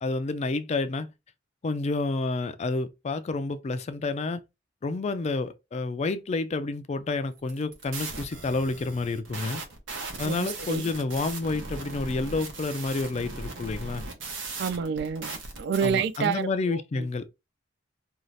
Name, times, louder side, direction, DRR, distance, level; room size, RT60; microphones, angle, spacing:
voice 1, 0.0-1.1 1.6-4.4 4.8-9.6 10.2-14.0 15.8-17.2, left 3 dB, 35° left, 0.3 m, -29 dB
sound 1, 7.4-16.3, right 3 dB, 80° right, 0.9 m, -38 dB
voice 2, 10.2-10.8 14.6-17.1, right 6 dB, 60° right, 0.3 m, -29 dB
2.6 x 2.4 x 3.1 m
head